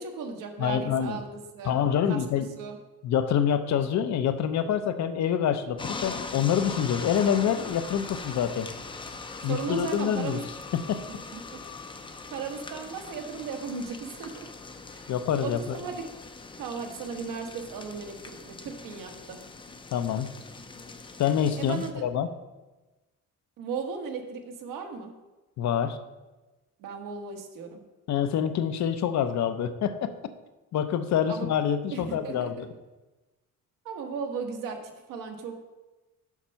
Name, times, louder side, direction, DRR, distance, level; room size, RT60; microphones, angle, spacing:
voice 1, 0.0-1.7 2.1-2.8 9.4-10.4 11.3-11.4 12.3-14.5 14.9-15.1 15.4-16.0 16.6-19.4 21.6-22.0 23.6-25.1 26.8-27.8 31.3-31.5 31.9-32.7 33.8-35.6, right 5 dB, 80° right, 4 dB, 1.3 m, -36 dB
voice 2, 0.6-1.2 1.6-2.5 3.0-8.7 9.4-10.4 10.7-11.0 15.1-15.8 19.9-20.3 21.2-22.3 25.6-26.0 28.1-30.1 30.7-32.7, left 8 dB, 60° left, 10 dB, 0.7 m, -26 dB
sound 1, 5.8-21.9, left 3 dB, 15° left, 0.5 m, -41 dB
7.2 x 5.3 x 5.7 m, 1.1 s
cardioid pair, 145°, 32 cm